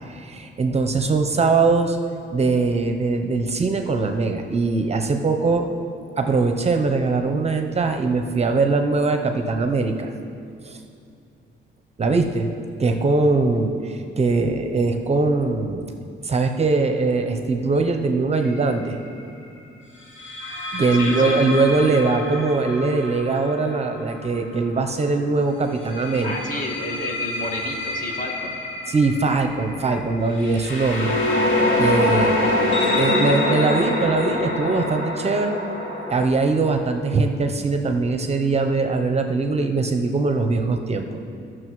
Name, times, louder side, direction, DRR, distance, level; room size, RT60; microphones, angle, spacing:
voice 1, 0.1-2.0 2.3-5.7 6.2-10.1 10.6-10.8 12.0-12.5 12.8-15.8 16.2-19.0 20.7-26.3 28.9-32.4 33.0-35.6 36.1-41.1, right 3 dB, 30° right, 5 dB, 0.6 m, -21 dB
sound 1, 18.4-18.7 20.2-24.9 25.7-36.2, left 2 dB, 65° left, 2.3 m, -25 dB
voice 2, 21.0-21.4 26.2-28.6, left 1 dB, 40° left, 0 dB, 1.7 m, -31 dB
16.5 x 6.2 x 3.1 m, 2.4 s
cardioid pair, 90°, 20 cm